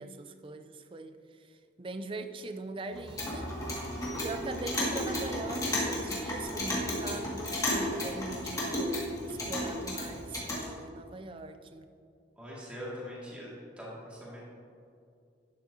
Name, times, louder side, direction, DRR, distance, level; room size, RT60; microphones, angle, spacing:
voice 1, 0.0-3.9 4.2-11.9, right 3 dB, 25° right, 9 dB, 0.4 m, -42 dB
Clock, 2.9-10.7, left 1 dB, 20° left, 2.0 m, -33 dB
sound 1, 3.3-8.6, right 1 dB, 90° right, 2.4 m, -50 dB
voice 2, 12.4-13.5 13.8-14.4, equal, 5° right, -7 dB, 2.2 m, -42 dB
11.5 x 9.7 x 2.8 m, 2.4 s
head